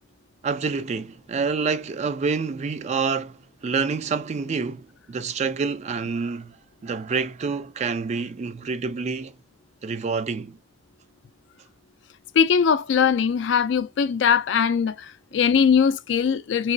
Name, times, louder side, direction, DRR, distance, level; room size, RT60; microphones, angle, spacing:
voice 1, 0.4-6.6 6.8-9.4 9.8-10.6, right 5 dB, 35° right, 0.3 m, -27 dB
voice 2, 12.3-16.7, left 6 dB, 70° left, 0.4 m, -21 dB
3.1 x 2.9 x 2.6 m
head